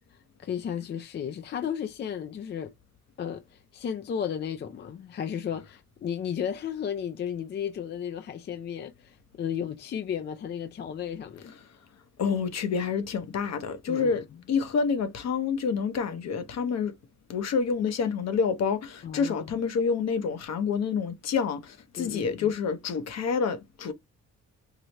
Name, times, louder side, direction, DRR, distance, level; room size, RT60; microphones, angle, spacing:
voice 1, 0.4-2.7 3.2-11.5 13.9-14.2 19.0-19.6 22.0-22.5, left 8 dB, 35° left, 0.4 m, -34 dB
voice 2, 12.2-16.9 17.3-23.9, left 5 dB, 60° left, 0.8 m, -28 dB
4.8 x 2.1 x 2.8 m
cardioid pair, 90°, 30 cm